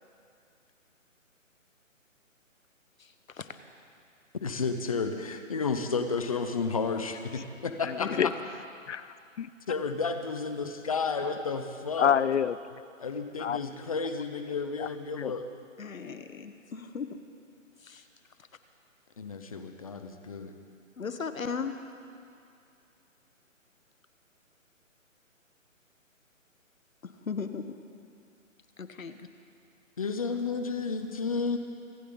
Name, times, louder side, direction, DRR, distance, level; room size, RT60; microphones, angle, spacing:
voice 1, 3.0-3.5 8.0-8.3 15.8-17.1 17.8-18.1 21.0-21.7 27.0-27.6 28.8-29.3, left 5 dB, 85° left, 9 dB, 1.3 m, -37 dB
voice 2, 4.4-8.3 9.7-12.1 13.0-15.4 19.2-20.5 30.0-31.6, left 4 dB, 25° left, 7 dB, 0.8 m, -32 dB
voice 3, 7.8-8.3 8.9-9.5 12.0-12.6 13.4-13.6 14.8-15.3, left 8 dB, 60° left, 18 dB, 0.5 m, -28 dB
25.0 x 12.0 x 3.9 m, 2.5 s
hypercardioid pair, 165°, 40 cm